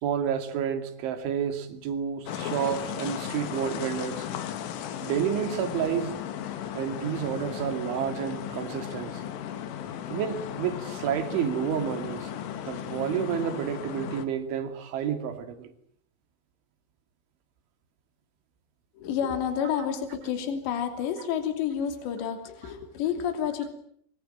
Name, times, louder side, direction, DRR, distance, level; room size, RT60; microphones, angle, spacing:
voice 1, 0.0-4.3 5.0-6.1 6.7-9.2 10.1-12.3 12.7-15.7, right 8 dB, 75° right, 4.7 m, -30 dB
sound 1, 2.3-14.3, left 10 dB, 80° left, 4.5 m, -36 dB
voice 2, 18.9-23.7, left 8 dB, 65° left, 5.1 m, -29 dB
25.5 x 25.0 x 9.2 m
omnidirectional pair, 5.6 m